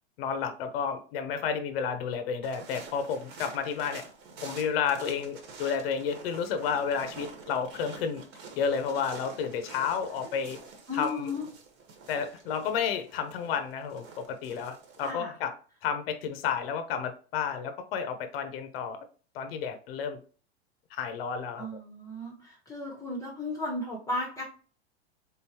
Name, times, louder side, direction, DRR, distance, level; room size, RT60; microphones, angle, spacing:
voice 1, 0.2-4.0 4.4-8.2 8.5-10.6 10.9-11.3 12.1-15.5 15.8-19.0 19.3-20.2 20.9-21.7, left 7 dB, 60° left, 9 dB, 0.8 m, -31 dB
sound 1, 2.4-15.1, right 4 dB, 50° right, 1.3 m, -47 dB
voice 2, 10.9-11.4 15.0-15.3 21.6-24.4, left 2 dB, 10° left, -1 dB, 0.8 m, -35 dB
3.8 x 3.8 x 2.8 m, 0.40 s
hypercardioid pair, 115°, 33 cm